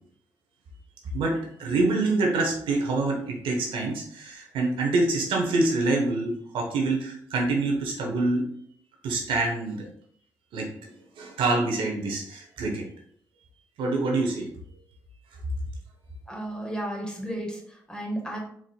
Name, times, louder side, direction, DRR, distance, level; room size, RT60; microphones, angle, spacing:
voice 1, 1.1-8.5 9.0-9.9 10.5-10.7 11.2-12.9 13.8-14.5, right 2 dB, 70° right, 0 dB, 1.0 m, -26 dB
voice 2, 16.3-18.4, right 1 dB, 10° left, 0 dB, 1.6 m, -33 dB
4.4 x 3.7 x 2.3 m, 0.63 s
hypercardioid pair, 45°, 9 cm